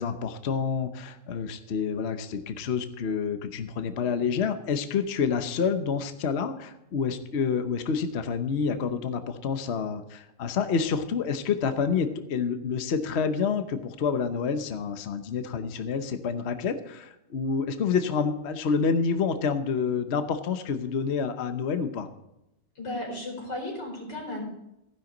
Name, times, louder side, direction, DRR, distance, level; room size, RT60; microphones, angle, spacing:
voice 1, 0.0-22.1, left 6 dB, 50° left, 8 dB, 1.0 m, -28 dB
voice 2, 22.7-24.4, left 1 dB, 85° left, -1 dB, 4.9 m, -34 dB
15.5 x 10.5 x 3.9 m, 0.87 s
omnidirectional pair, 1.8 m